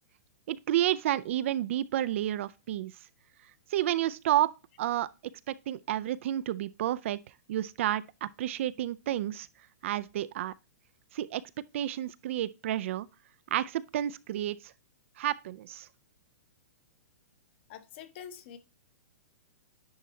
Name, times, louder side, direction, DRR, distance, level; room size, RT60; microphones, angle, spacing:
voice 1, 0.5-2.9 3.7-5.1 5.5-7.2 7.5-9.5 9.8-10.5 11.1-13.1 13.5-14.7 15.2-15.9, right 12 dB, 50° right, 0.4 m, -30 dB
voice 2, 17.7-18.6, left 8 dB, 45° left, 1.0 m, -45 dB
10.0 x 4.1 x 2.7 m
hypercardioid pair, 150°, 8 cm